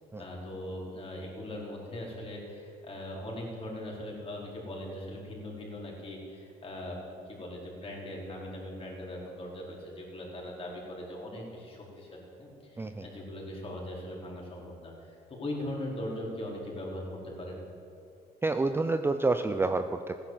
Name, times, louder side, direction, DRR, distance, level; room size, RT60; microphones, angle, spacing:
voice 1, 0.2-17.6, left 1 dB, 35° left, -3 dB, 4.5 m, -40 dB
voice 2, 18.4-20.2, right 3 dB, 15° right, 8 dB, 0.5 m, -28 dB
15.0 x 11.0 x 7.8 m, 2.6 s
cardioid pair, 110°, 17 cm